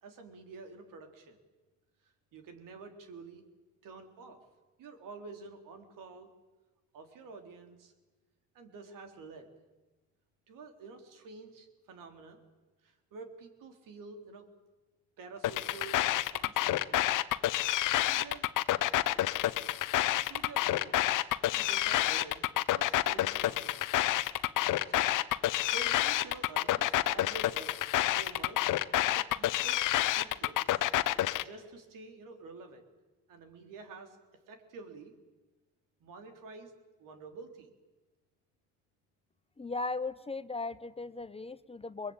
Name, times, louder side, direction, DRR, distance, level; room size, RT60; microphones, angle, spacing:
voice 1, 0.0-1.4 2.0-3.4 3.8-4.4 4.8-6.3 6.9-7.9 8.5-9.5 10.5-12.4 12.8-14.5 15.2-17.1 18.1-18.5 20.1-23.9 24.9-25.2 25.7-27.7 28.1-28.8 29.0-30.8 31.4-32.8 33.3-34.2 34.5-35.1 36.0-36.7 37.0-37.7, right 4 dB, 70° right, 6 dB, 3.6 m, -49 dB
sound 1, 15.4-31.4, left 14 dB, 65° left, 1.0 m, -29 dB
voice 2, 39.6-42.1, left 3 dB, 20° left, 13 dB, 0.9 m, -37 dB
22.0 x 21.5 x 8.8 m, 1.2 s
supercardioid pair, 75°, 33 cm